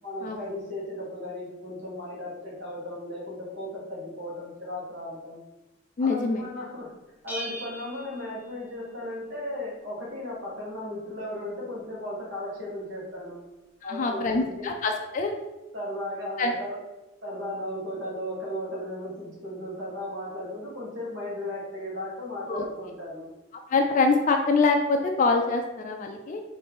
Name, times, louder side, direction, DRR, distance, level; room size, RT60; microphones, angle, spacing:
voice 1, 0.0-5.4 6.0-6.9 7.2-13.4 13.8-14.7 15.7-16.8 17.2-23.3, left 1 dB, 75° right, -5 dB, 1.4 m, -36 dB
voice 2, 6.0-6.4 13.8-15.4 16.4-16.5 22.5-22.6 23.7-26.4, left 3 dB, 40° left, 3 dB, 0.3 m, -24 dB
Bell, 7.3-9.1, right 1 dB, 10° right, 0.7 m, -40 dB
3.9 x 2.7 x 3.7 m, 1.0 s
head